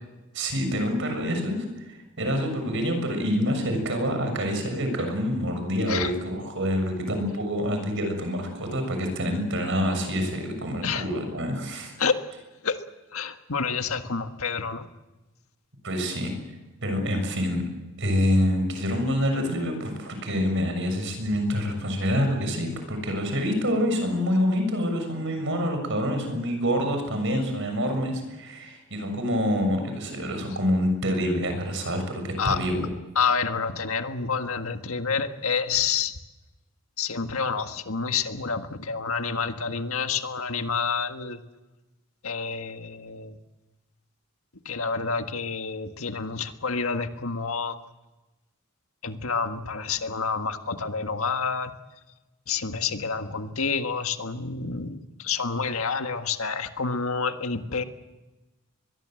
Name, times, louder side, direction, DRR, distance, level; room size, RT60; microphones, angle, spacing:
voice 1, 0.3-12.0 15.8-16.3 16.8-17.6 18.0-32.9, equal, 65° right, 6 dB, 6.8 m, -26 dB
voice 2, 13.1-14.9 32.4-32.6 33.2-36.1 37.0-41.4 42.2-43.4 44.7-47.8 49.0-51.7 52.5-57.8, left 5 dB, 90° left, 7 dB, 1.7 m, -28 dB
24.0 x 22.0 x 7.8 m, 1.1 s
head